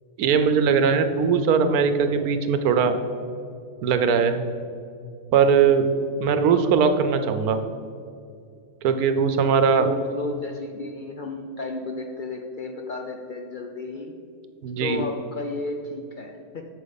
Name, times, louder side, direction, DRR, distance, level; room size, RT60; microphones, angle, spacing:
voice 1, 0.2-3.0 3.8-4.4 5.3-5.9 6.2-7.6 8.8-9.9 14.6-15.0, right 6 dB, 85° right, 9 dB, 1.1 m, -20 dB
voice 2, 9.8-14.1 14.8-16.6, left 2 dB, 70° left, 3 dB, 0.4 m, -33 dB
8.4 x 7.0 x 4.1 m, 2.4 s
omnidirectional pair, 1.5 m